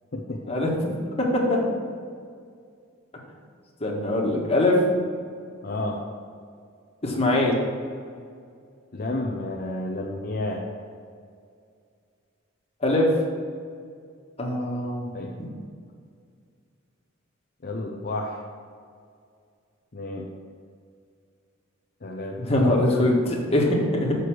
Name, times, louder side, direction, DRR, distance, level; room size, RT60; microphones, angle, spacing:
voice 1, 0.5-0.9 1.2-1.8 3.8-4.8 7.0-7.6 12.8-13.1 14.4-15.1 15.4-15.5 22.4-24.2, left 1 dB, 30° left, -2 dB, 1.7 m, -22 dB
voice 2, 5.6-6.0 8.9-10.7 15.1-15.3 17.6-18.4 19.9-20.3 22.0-22.4, left 2 dB, 50° left, 0 dB, 0.7 m, -31 dB
6.8 x 6.5 x 6.2 m, 2.2 s
head